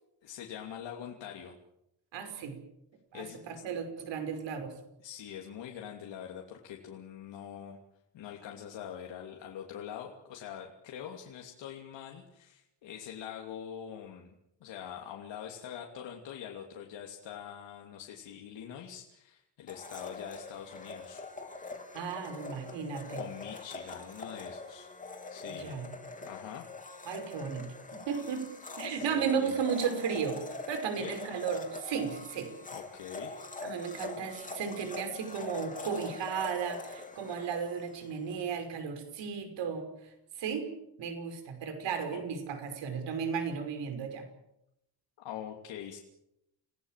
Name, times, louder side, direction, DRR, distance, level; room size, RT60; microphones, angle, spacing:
voice 1, 0.2-1.5 3.1-3.4 5.0-7.8 8.1-14.3 14.6-21.3 21.5-21.8 23.2-24.9 25.3-25.7 26.2-27.1 28.9-29.5 30.9-31.2 32.7-33.4 42.1-42.2 45.2-46.0, left 9 dB, 90° left, 1 dB, 3.0 m, -44 dB
voice 2, 2.1-2.6 3.1-4.7 21.9-23.2 25.5-25.9 27.1-28.5 28.8-30.4 30.7-32.5 33.6-39.9 40.4-40.7 41.0-44.2, right 6 dB, 90° right, 7 dB, 5.6 m, -34 dB
Domestic sounds home sounds, 19.7-38.5, left 3 dB, 20° left, 3.2 m, -43 dB
28.5 x 18.5 x 7.5 m, 0.84 s
cardioid pair, 165°, 42 cm